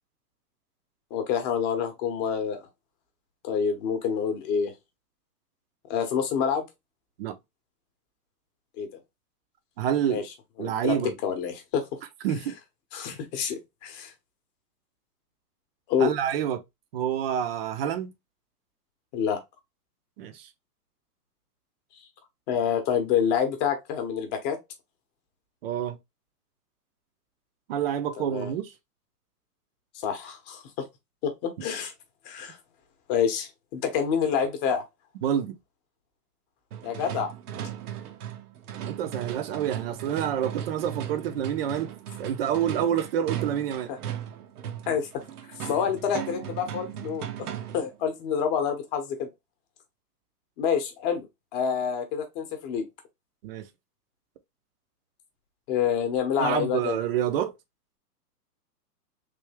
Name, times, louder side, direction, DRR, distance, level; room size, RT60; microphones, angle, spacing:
voice 1, 1.1-2.6 3.4-4.7 5.9-6.7 8.8-8.9 10.1-10.2 10.6-11.8 12.9-14.1 15.9-16.1 19.1-19.4 22.5-24.6 28.2-28.5 29.9-30.9 31.2-31.9 32.2-32.6 33.1-34.8 36.8-37.3 43.9-44.0 44.9-45.1 45.6-47.5 47.7-49.3 50.6-51.3 51.5-52.8 55.7-57.0, left 7 dB, 25° left, 0.9 m, -27 dB
voice 2, 9.8-10.2 10.6-11.1 12.2-12.5 16.0-16.6 16.9-18.1 20.2-20.5 25.6-26.0 27.7-28.7 35.2-35.5 38.8-41.9 42.2-43.9 53.4-53.7 56.4-57.5, right 9 dB, 40° right, 0.6 m, -28 dB
sound 1, 36.7-48.0, right 10 dB, 70° right, 0.8 m, -37 dB
3.4 x 2.7 x 3.3 m
hypercardioid pair, 145°, 47 cm